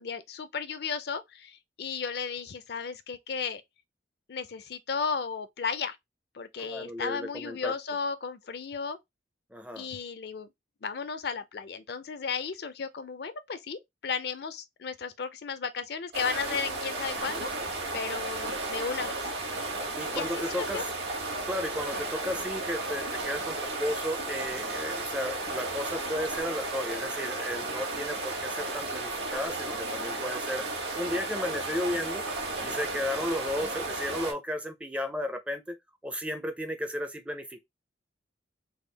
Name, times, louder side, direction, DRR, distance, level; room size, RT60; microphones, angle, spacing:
voice 1, 0.0-3.6 4.3-6.0 6.3-9.0 9.8-10.5 10.8-19.2 20.1-20.3 20.6-20.8, left 5 dB, 55° left, 0.5 m, -34 dB
voice 2, 6.6-7.7 9.5-9.9 19.9-20.9 21.5-32.2 32.6-35.8 36.0-37.6, left 1 dB, 5° right, 0.4 m, -34 dB
sound 1, 16.1-34.3, right 2 dB, 60° right, 1.2 m, -34 dB
3.5 x 2.3 x 3.3 m
head